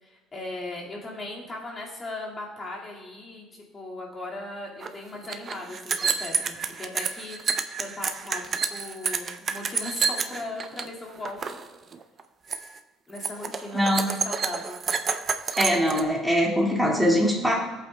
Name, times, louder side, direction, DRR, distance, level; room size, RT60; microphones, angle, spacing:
voice 1, 0.0-3.5 3.7-11.6 13.1-14.8, left 2 dB, 20° left, -4 dB, 2.0 m, -38 dB
sound 1, 4.8-4.9 5.1-10.9 11.2-11.6 11.9-12.2 12.5-12.8 13.2-16.0, right 5 dB, 30° right, 0.5 m, -29 dB
voice 2, 13.7-14.1 15.6-17.5, equal, ahead, -3 dB, 2.0 m, -22 dB
18.0 x 8.3 x 2.2 m, 1.2 s
cardioid pair, 155°, 0 cm